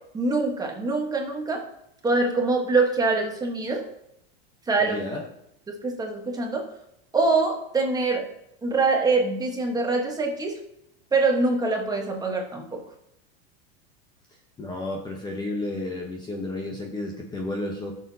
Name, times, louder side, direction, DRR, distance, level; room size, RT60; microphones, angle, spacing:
voice 1, 0.1-1.6 2.0-3.8 4.7-5.0 5.8-6.6 7.1-8.2 8.6-10.6 11.1-12.8, right 3 dB, 10° right, 1 dB, 1.3 m, -24 dB
voice 2, 4.8-5.2 14.6-17.9, left 2 dB, 15° left, 0 dB, 1.0 m, -32 dB
15.5 x 6.7 x 2.8 m, 0.79 s
supercardioid pair, 155°, 31 cm